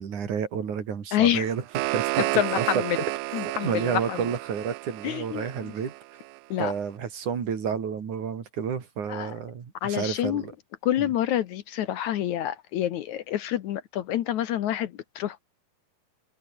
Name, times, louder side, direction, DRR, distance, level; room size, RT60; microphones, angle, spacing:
voice 1, 0.0-1.6 1.9-2.6 3.6-5.9 6.6-10.5 11.0-11.1, right 7 dB, 65° right, 4.2 m, -30 dB
voice 2, 1.1-1.5 2.2-3.0 3.3-4.2 5.0-5.7 6.5-6.7 9.1-9.3 9.8-10.4 10.8-15.4, left 12 dB, 70° left, 2.2 m, -27 dB
sound 1, 1.3-6.4, right 20 dB, 80° right, 1.8 m, -32 dB
omnidirectional pair, 3.9 m